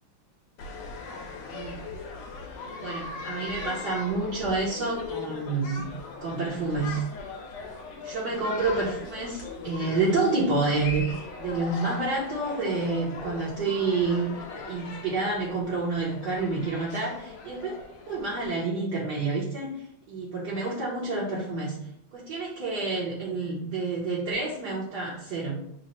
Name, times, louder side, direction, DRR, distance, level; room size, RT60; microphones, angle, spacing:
sound 1, 0.6-18.5, left 4 dB, 70° left, 1.3 m, -39 dB
voice 1, 1.5-1.8 2.8-5.9 6.2-7.0 8.0-17.8 18.1-21.8 22.1-25.7, right 3 dB, 65° right, -5 dB, 1.2 m, -29 dB
3.9 x 2.0 x 4.1 m, 0.72 s
omnidirectional pair, 2.2 m